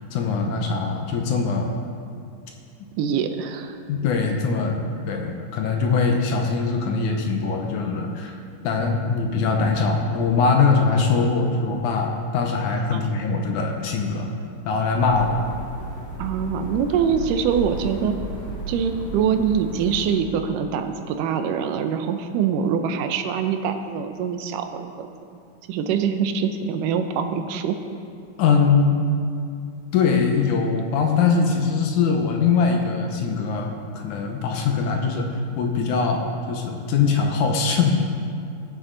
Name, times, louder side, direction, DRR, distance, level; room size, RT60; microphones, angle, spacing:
voice 1, 0.1-1.7 3.9-8.3 8.6-14.3 14.7-15.4 28.4-29.0 29.9-35.3 35.6-37.9, left 5 dB, 70° left, 2 dB, 2.1 m, -22 dB
voice 2, 3.0-3.8 12.9-13.0 16.2-18.2 18.7-25.1 25.7-27.8, right 7 dB, 80° right, 7 dB, 2.2 m, -24 dB
sound 1, 14.9-20.2, right 2 dB, 20° left, 2.5 m, -34 dB
17.0 x 7.8 x 3.8 m, 2.3 s
omnidirectional pair, 3.9 m